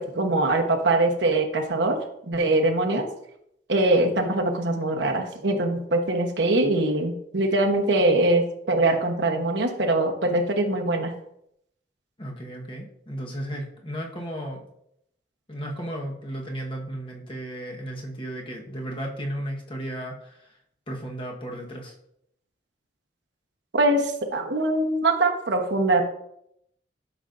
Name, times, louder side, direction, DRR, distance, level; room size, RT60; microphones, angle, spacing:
voice 1, 0.0-2.0 2.3-3.0 3.7-11.1 23.7-26.1, right 2 dB, 70° right, 2 dB, 1.1 m, -23 dB
voice 2, 12.2-14.6 15.5-20.6 20.9-21.9, right 1 dB, 30° left, 0 dB, 1.3 m, -34 dB
12.0 x 5.4 x 2.6 m, 0.75 s
head